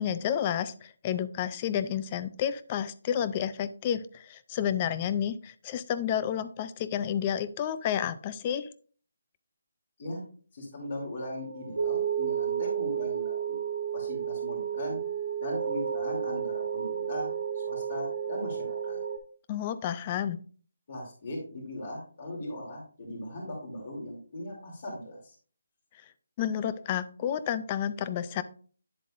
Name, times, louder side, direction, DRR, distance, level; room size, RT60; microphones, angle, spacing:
voice 1, 0.0-8.7 19.5-20.4 26.4-28.4, left 9 dB, 20° left, 14 dB, 0.4 m, -30 dB
voice 2, 10.5-13.6 13.9-15.0 15.4-19.0 20.9-25.3, left 1 dB, 35° left, -6 dB, 2.9 m, -39 dB
sound 1, 11.2-19.2, right 8 dB, 70° right, 1.5 m, -32 dB
10.0 x 7.6 x 2.5 m, 0.42 s
hypercardioid pair, 175°, 0 cm